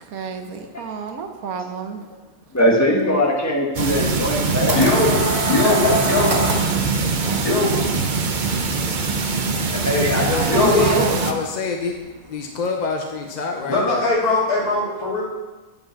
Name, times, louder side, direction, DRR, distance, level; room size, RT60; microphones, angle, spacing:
voice 1, 0.1-2.0 4.7-5.2 7.2-8.3 9.6-11.2, right 5 dB, 75° right, 6 dB, 1.3 m, -32 dB
voice 2, 2.5-4.8 5.2-5.9 9.7-11.2, left 1 dB, 10° left, -2 dB, 1.4 m, -21 dB
sound 1, 3.7-11.3, right 4 dB, 45° right, 0.6 m, -23 dB
sound 2, 4.3-6.8, right 1 dB, 30° right, 1.2 m, -25 dB
voice 3, 4.8-5.2 5.5-6.3 7.4-7.7 10.5-10.8 13.7-15.2, left 2 dB, 85° left, -4 dB, 2.7 m, -20 dB
voice 4, 9.2-9.7 10.1-11.9 12.2-14.1, left 3 dB, 45° left, 2 dB, 0.6 m, -27 dB
9.8 x 5.4 x 5.7 m, 1.2 s
omnidirectional pair, 1.5 m